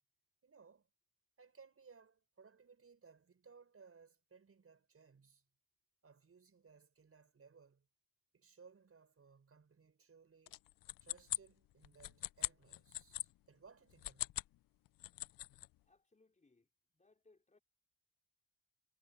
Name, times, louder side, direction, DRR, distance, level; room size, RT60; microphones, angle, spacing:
voice 1, 0.4-0.9 1.4-5.4 6.0-7.9 8.3-10.6 11.0-14.3, right 5 dB, 35° right, 6.8 m, -63 dB
sound 1, 10.5-13.3 13.9-14.5 14.9-15.7, left 16 dB, 60° left, 0.5 m, -42 dB
voice 2, 15.8-17.6, left 3 dB, 20° left, 4.5 m, -71 dB
cardioid pair, 110°, 38 cm